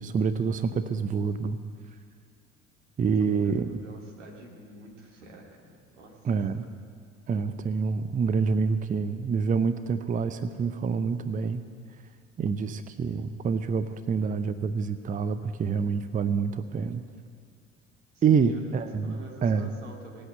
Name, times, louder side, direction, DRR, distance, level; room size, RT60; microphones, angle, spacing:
voice 1, 0.0-1.6 3.0-3.8 6.2-6.6 7.3-11.6 12.4-17.0 18.2-19.7, right 5 dB, 20° right, 11 dB, 0.6 m, -27 dB
voice 2, 3.2-6.2 18.1-20.3, right 1 dB, 80° right, -1 dB, 2.4 m, -48 dB
18.5 x 8.4 x 7.9 m, 2.3 s
figure-of-eight pair, 60°, 36 cm